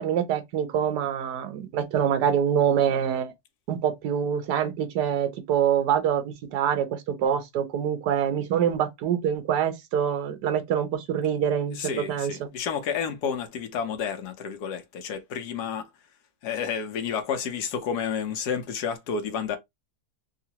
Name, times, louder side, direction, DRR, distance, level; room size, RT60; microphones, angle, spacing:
voice 1, 0.0-3.3 3.7-11.8 12.1-12.3, right 8 dB, 80° right, 1.3 m, -25 dB
voice 2, 11.7-15.9 16.4-19.6, left 7 dB, 75° left, 1.3 m, -30 dB
3.7 x 2.4 x 2.8 m
omnidirectional pair, 1.8 m